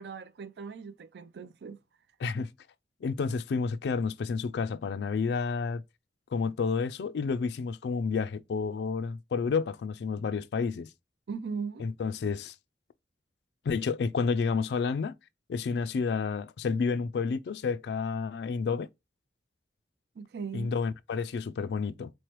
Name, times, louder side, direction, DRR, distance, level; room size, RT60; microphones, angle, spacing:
voice 1, 0.0-1.8 2.3-2.4 11.3-11.9 20.2-20.7, right 5 dB, 70° right, 0.4 m, -39 dB
voice 2, 3.0-5.8 6.3-10.9 11.8-12.5 13.7-15.1 15.5-18.9 20.5-22.1, left 5 dB, 70° left, 0.3 m, -30 dB
4.1 x 3.1 x 2.9 m
head